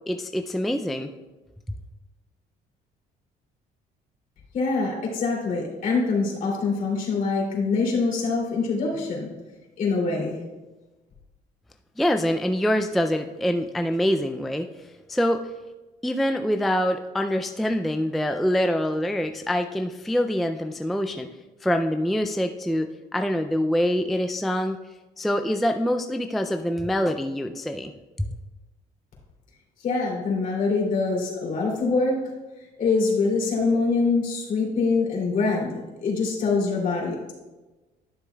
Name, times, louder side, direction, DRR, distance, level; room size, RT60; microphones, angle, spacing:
voice 1, 0.1-1.1 12.0-15.5 16.0-21.3 21.6-24.8 25.2-27.9 28.2-28.3, equal, ahead, 6 dB, 0.3 m, -25 dB
voice 2, 4.5-9.3 9.8-10.4 29.8-32.2 32.6-37.3, left 4 dB, 55° left, -2 dB, 2.7 m, -24 dB
11.5 x 6.8 x 2.3 m, 1.2 s
cardioid pair, 110°, 17 cm